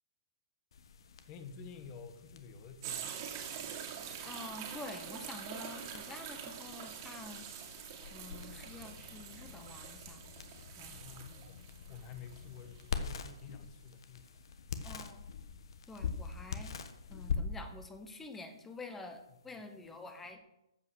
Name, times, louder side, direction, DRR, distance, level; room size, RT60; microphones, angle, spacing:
sound 1, 0.7-20.3, left 5 dB, 60° left, 1.4 m, -45 dB
voice 1, 1.3-3.3 10.9-14.3, left 6 dB, 30° left, 8 dB, 1.4 m, -50 dB
sound 2, 2.8-13.4 13.9-14.0, right 8 dB, 35° right, 2.4 m, -45 dB
voice 2, 4.2-7.5 8.1-10.2 10.8-11.0 14.8-15.2 15.9-16.7 17.1-20.4, left 2 dB, 10° left, 7 dB, 1.1 m, -48 dB
14.0 x 5.6 x 6.3 m, 0.89 s
hypercardioid pair, 145°, 3 cm